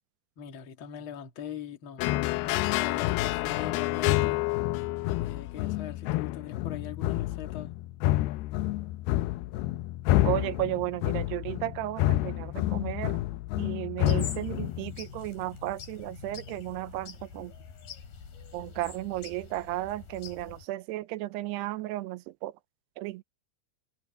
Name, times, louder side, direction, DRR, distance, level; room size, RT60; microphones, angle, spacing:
voice 1, 0.4-2.0 2.4-4.4 5.2-7.7, left 9 dB, 40° left, 2.0 m, -41 dB
sound 1, 2.0-15.1, left 16 dB, 85° left, 2.3 m, -29 dB
voice 2, 10.2-13.2 13.6-17.5 18.5-22.5 23.0-23.2, right 16 dB, 80° right, 2.6 m, -34 dB
sound 2, 14.0-20.6, left 6 dB, 60° left, 5.5 m, -45 dB
omnidirectional pair, 5.1 m